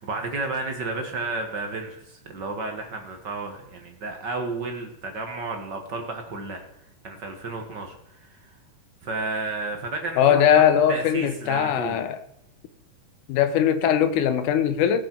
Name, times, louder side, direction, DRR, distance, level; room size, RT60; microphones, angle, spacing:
voice 1, 0.0-6.6 7.0-8.5 9.0-10.6 10.9-12.0, right 3 dB, 55° right, 1.3 m, -32 dB
voice 2, 10.2-12.2 13.3-15.0, left 9 dB, 80° left, 2.4 m, -20 dB
18.5 x 7.7 x 4.4 m
omnidirectional pair, 3.6 m